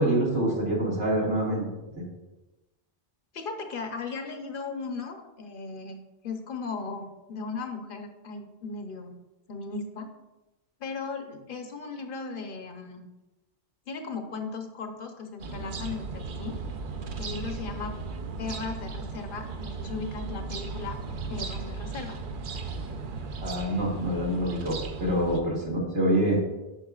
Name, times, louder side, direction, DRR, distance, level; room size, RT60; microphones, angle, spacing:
voice 1, 0.0-1.7 2.0-2.1 23.4-26.4, right 1 dB, 85° right, -4 dB, 2.2 m, -26 dB
voice 2, 3.3-9.2 9.5-10.1 10.8-13.1 13.9-16.6 17.2-17.9 18.4-21.0 21.3-22.2, left 4 dB, 55° left, 5 dB, 0.9 m, -37 dB
sound 1, 15.4-25.4, right 4 dB, 55° right, 0.7 m, -36 dB
8.6 x 6.1 x 2.3 m, 1.0 s
omnidirectional pair, 1.1 m